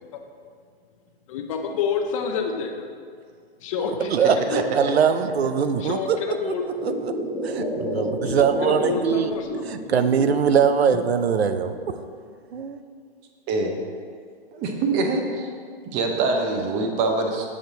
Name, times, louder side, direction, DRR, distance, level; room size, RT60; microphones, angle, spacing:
voice 1, 1.3-2.7 3.6-4.6 5.8-6.6 8.2-9.6, left 6 dB, 35° left, 4 dB, 0.5 m, -28 dB
voice 2, 3.8-6.2 6.5-6.6 6.8-7.1 7.4-9.3 9.7-11.8 12.5-12.8, right 7 dB, 90° right, 10 dB, 0.5 m, -22 dB
Wobble Board, 6.7-9.0 9.2-10.6 11.0-11.9 12.6-12.7, equal, 10° left, 0.8 m, -30 dB
voice 3, 14.5-15.5 15.9-17.5, right 3 dB, 20° right, 3 dB, 0.6 m, -24 dB
7.3 x 4.4 x 3.9 m, 2.1 s
hypercardioid pair, 140°, 31 cm